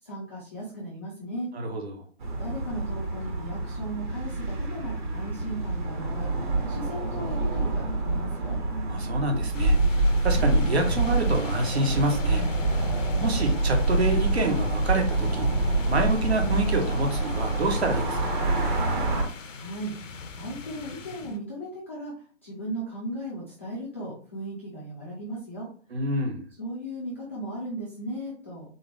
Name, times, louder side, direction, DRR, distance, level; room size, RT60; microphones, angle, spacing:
voice 1, 0.0-1.5 2.4-6.3 6.7-8.6 19.5-22.1 22.4-25.7 26.6-28.6, right 1 dB, 10° left, -9 dB, 0.5 m, -36 dB
voice 2, 1.5-2.0 8.9-12.4 13.2-15.5 15.9-18.5 25.9-26.5, right 1 dB, 55° right, 3 dB, 1.3 m, -27 dB
sound 1, 2.2-19.2, right 2 dB, 40° right, 1.4 m, -26 dB
sound 2, 9.5-21.4, left 4 dB, 80° left, 0.7 m, -39 dB
4.1 x 3.2 x 3.3 m, 0.43 s
figure-of-eight pair, 145°, 37 cm